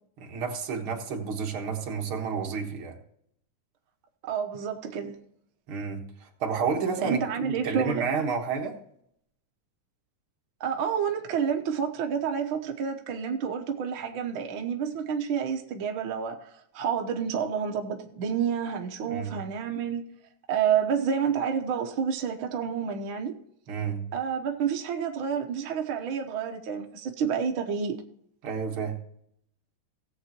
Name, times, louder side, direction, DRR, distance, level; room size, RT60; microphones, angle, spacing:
voice 1, 0.2-3.0 5.7-8.8 19.1-19.4 23.7-24.1 28.4-29.0, right 5 dB, 50° right, 1.9 m, -30 dB
voice 2, 4.2-5.2 7.0-8.1 10.6-20.0 20.5-23.4 24.1-28.0, right 7 dB, 80° right, 1.1 m, -29 dB
18.0 x 7.9 x 2.9 m
omnidirectional pair, 3.7 m